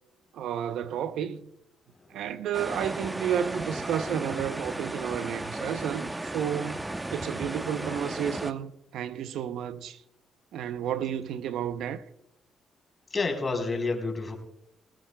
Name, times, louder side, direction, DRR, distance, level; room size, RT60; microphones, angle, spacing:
voice 1, 0.3-1.5 2.1-10.0 10.5-12.0, right 9 dB, 80° right, 0.7 m, -32 dB
sound 1, 2.5-8.5, right 1 dB, 15° right, 0.8 m, -35 dB
voice 2, 13.1-14.4, left 3 dB, 30° left, 3.8 m, -29 dB
20.0 x 16.5 x 2.2 m
cardioid pair, 90°, 0 cm